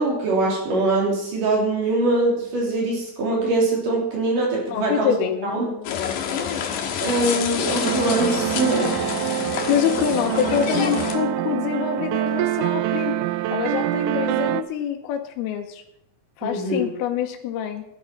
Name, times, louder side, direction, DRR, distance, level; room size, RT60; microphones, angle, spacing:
voice 1, 0.0-5.2 5.4-5.7 7.0-9.0 16.4-16.9, right 2 dB, 60° right, -1 dB, 4.6 m, -23 dB
voice 2, 4.7-5.9 9.7-13.2 13.5-15.8 16.4-17.8, left 9 dB, 80° left, 4 dB, 2.8 m, -25 dB
sound 1, 5.9-11.2, left 7 dB, 65° left, 2.7 m, -28 dB
sound 2, 7.8-14.6, right 14 dB, 85° right, 1.8 m, -25 dB
sound 3, 8.4-11.8, left 1 dB, 35° right, 4.4 m, -39 dB
13.0 x 10.5 x 5.8 m, 0.78 s
omnidirectional pair, 4.4 m